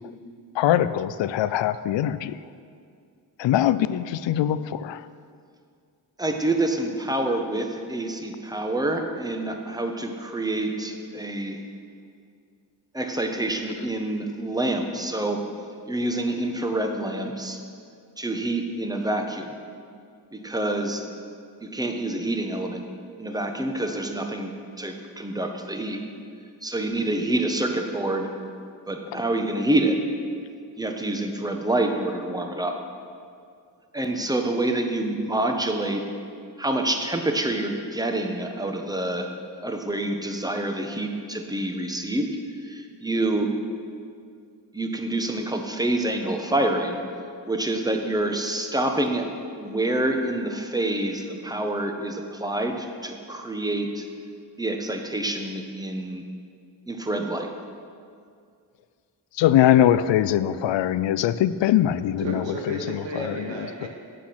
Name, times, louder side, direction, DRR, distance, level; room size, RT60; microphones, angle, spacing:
voice 1, 0.6-2.4 3.4-5.0 59.4-62.2 63.2-63.4 63.8-63.9, left 11 dB, 85° left, 15 dB, 0.5 m, -21 dB
voice 2, 6.2-11.6 12.9-15.5 15.9-17.6 18.2-19.6 20.3-21.0 21.6-22.9 23.2-26.0 26.6-28.3 28.9-30.0 30.8-32.8 33.9-36.1 36.6-39.3 39.6-42.3 42.6-43.5 44.7-47.0 47.5-49.3 49.6-54.1 54.6-56.2 56.9-57.5, right 1 dB, 10° right, 4 dB, 1.3 m, -27 dB
voice 3, 62.2-63.9, right 2 dB, 90° right, 0 dB, 2.0 m, -33 dB
11.5 x 8.4 x 6.0 m, 2.3 s
cardioid pair, 75°, 43 cm